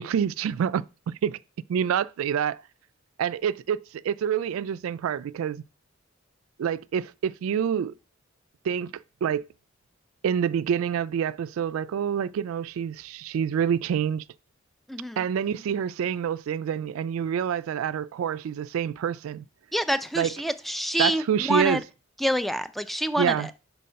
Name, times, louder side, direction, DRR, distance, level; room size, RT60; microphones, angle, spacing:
voice 1, 0.0-1.4 1.7-2.6 3.2-5.6 6.6-7.9 8.6-9.5 10.2-14.2 15.2-19.4 20.2-20.3 21.0-21.8 23.2-23.5, right 8 dB, 90° right, 0.3 m, -27 dB
voice 2, 14.9-15.2 19.7-21.8 22.2-23.5, equal, ahead, 0.4 m, -27 dB
5.2 x 4.5 x 5.5 m
head